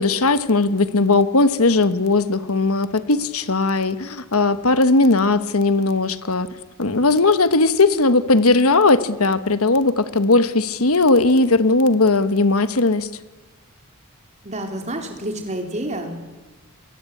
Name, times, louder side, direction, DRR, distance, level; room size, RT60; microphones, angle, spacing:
voice 1, 0.0-6.5 6.8-13.1, left 3 dB, 75° left, 12 dB, 1.3 m, -18 dB
voice 2, 14.4-16.2, right 1 dB, 30° right, 3 dB, 4.1 m, -29 dB
28.5 x 22.5 x 8.6 m, 1.2 s
head